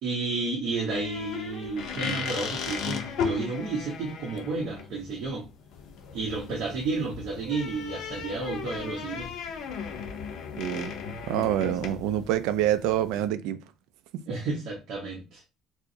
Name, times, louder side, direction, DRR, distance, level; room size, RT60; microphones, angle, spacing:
voice 1, 0.0-5.4 6.1-9.3 14.3-15.5, right 3 dB, 50° right, 0.9 m, -31 dB
sound 1, 0.9-13.3, left 6 dB, 50° left, 0.5 m, -36 dB
voice 2, 10.6-10.9 11.3-13.6, right 11 dB, 85° right, 0.3 m, -26 dB
4.5 x 2.1 x 2.6 m
cardioid pair, 175°, 0 cm